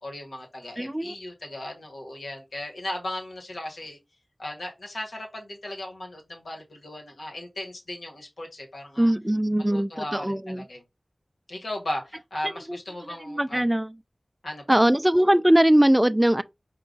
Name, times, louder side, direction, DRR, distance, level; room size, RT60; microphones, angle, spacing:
voice 1, 0.0-4.0 4.4-9.1 9.7-10.8 11.5-13.6 14.4-14.8, left 1 dB, 90° left, 1.3 m, -36 dB
voice 2, 0.8-1.1 9.0-10.7 12.4-12.8 13.1-14.0 14.7-16.4, right 1 dB, 15° right, 0.3 m, -21 dB
4.8 x 2.2 x 3.8 m
wide cardioid pair, 50°, 0 cm